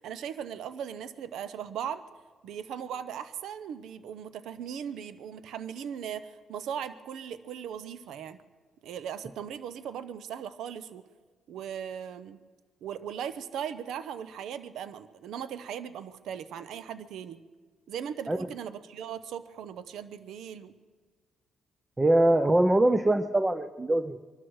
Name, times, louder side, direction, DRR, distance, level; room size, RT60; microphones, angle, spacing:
voice 1, 0.0-2.0 2.4-8.4 8.8-11.0 11.5-12.4 12.8-17.4 17.9-20.7, right 8 dB, 80° right, 14 dB, 0.7 m, -38 dB
voice 2, 22.0-24.2, right 1 dB, 15° right, 10 dB, 0.6 m, -23 dB
23.5 x 12.5 x 4.7 m, 1.5 s
cardioid pair, 90°, 0 cm